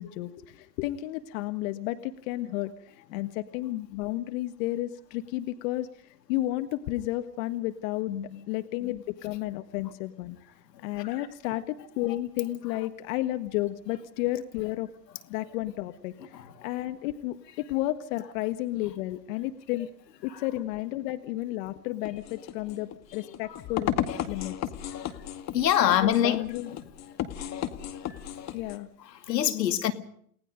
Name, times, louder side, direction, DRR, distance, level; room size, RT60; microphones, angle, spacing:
voice 1, 0.0-8.1 8.5-10.4 10.8-14.9 15.3-19.9 20.2-24.6 25.8-26.7 28.5-28.9 29.3-29.7, left 16 dB, 55° left, 1.6 m, -32 dB
voice 2, 8.1-8.4 10.7-11.3 16.3-16.5 20.3-20.4 23.2-23.6 24.1-24.4 24.9-25.2 25.5-26.4 27.2-27.5 27.8-28.6 29.0-29.9, left 11 dB, 75° left, 2.4 m, -28 dB
sound 1, 22.0-28.8, left 11 dB, 30° left, 2.1 m, -34 dB
29.5 x 18.5 x 5.2 m
hypercardioid pair, 110°, 49 cm